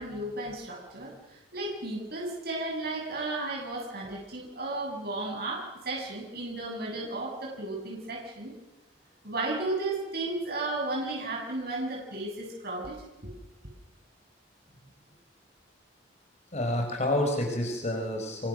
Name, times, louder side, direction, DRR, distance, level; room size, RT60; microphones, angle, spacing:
voice 1, 0.0-8.5 9.2-13.0 13.2-13.3, right 2 dB, 55° right, -1 dB, 7.8 m, -34 dB
voice 2, 16.5-18.5, left 1 dB, 35° left, 3 dB, 4.7 m, -29 dB
27.0 x 24.0 x 6.6 m, 0.97 s
head